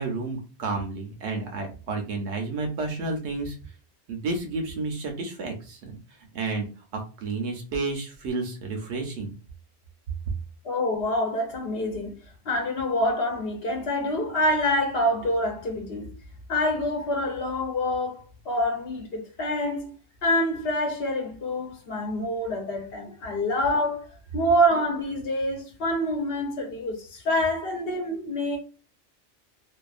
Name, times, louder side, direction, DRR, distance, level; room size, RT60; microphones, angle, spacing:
voice 1, 0.0-3.6 4.1-6.0 6.3-9.3, right 3 dB, 75° right, 1.0 m, -31 dB
voice 2, 10.6-12.2 12.5-16.1 16.5-19.9 20.2-24.1 24.3-28.6, left 1 dB, 65° left, 0.8 m, -26 dB
2.7 x 2.2 x 2.4 m
omnidirectional pair, 1.2 m